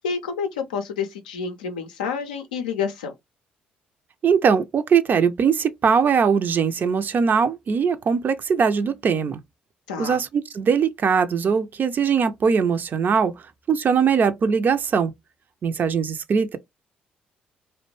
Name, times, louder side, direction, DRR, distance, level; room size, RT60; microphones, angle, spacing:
voice 1, 0.0-3.1 9.9-10.2, left 6 dB, 80° left, 0.5 m, -29 dB
voice 2, 4.2-9.4 10.0-13.3 13.7-15.1 15.6-16.6, right 6 dB, 45° right, 0.4 m, -21 dB
2.5 x 2.1 x 3.0 m
hypercardioid pair, 45°, 4 cm